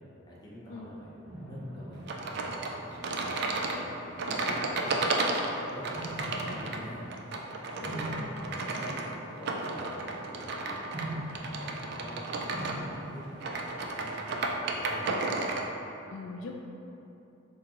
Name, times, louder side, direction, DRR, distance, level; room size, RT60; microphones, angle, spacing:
voice 1, 0.3-3.4 3.7-5.1 5.7-7.1 7.7-15.2, equal, 20° left, -7 dB, 0.8 m, -46 dB
sound 1, 1.3-3.5 4.2-4.6 5.9-10.1 10.9-15.3, right 1 dB, 35° right, 0.9 m, -43 dB
sound 2, 2.1-15.7, right 2 dB, 55° right, 0.4 m, -33 dB
voice 2, 6.3-6.9 7.8-8.3 16.1-16.7, left 3 dB, 75° left, 0 dB, 0.4 m, -43 dB
6.5 x 2.6 x 2.9 m, 2.9 s
head